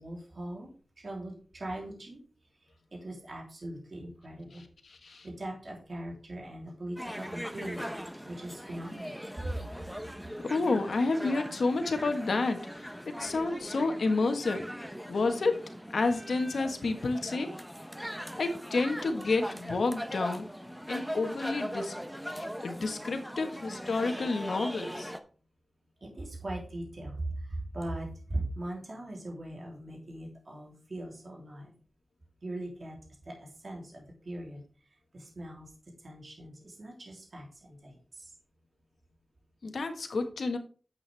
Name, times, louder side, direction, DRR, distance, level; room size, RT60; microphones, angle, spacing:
voice 1, 0.0-2.2 2.5-4.6 5.2-7.8 8.2-9.1 9.4-9.7 22.9-23.1 26.0-31.7 32.4-35.7 36.0-38.3, right 1 dB, 50° right, -1 dB, 3.2 m, -40 dB
sound 1, 7.0-25.2, equal, ahead, 0.9 m, -40 dB
voice 2, 10.5-12.9 13.2-14.6 15.1-15.6 15.9-17.5 18.4-20.5 20.9-21.9 22.3-25.1 39.6-40.6, left 3 dB, 75° left, 6 dB, 1.4 m, -30 dB
9.6 x 8.0 x 3.4 m, 0.38 s
wide cardioid pair, 85°, 0 cm